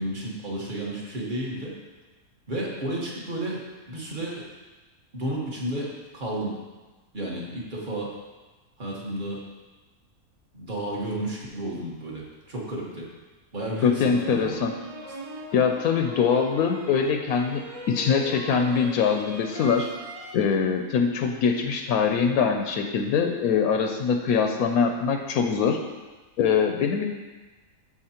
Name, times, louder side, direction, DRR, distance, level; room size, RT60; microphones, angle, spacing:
voice 1, 0.0-1.8 2.5-4.4 5.1-6.6 7.1-8.1 8.8-9.4 10.5-13.1 13.5-14.6, right 1 dB, 35° right, -4 dB, 1.5 m, -32 dB
voice 2, 13.8-14.8 15.5-17.6 17.9-19.9 20.3-25.8 26.4-27.1, left 6 dB, 75° left, 4 dB, 1.0 m, -23 dB
sound 1, 14.0-20.4, right 1 dB, 55° right, 0.4 m, -40 dB
13.0 x 4.3 x 2.9 m, 1.2 s
omnidirectional pair, 1.6 m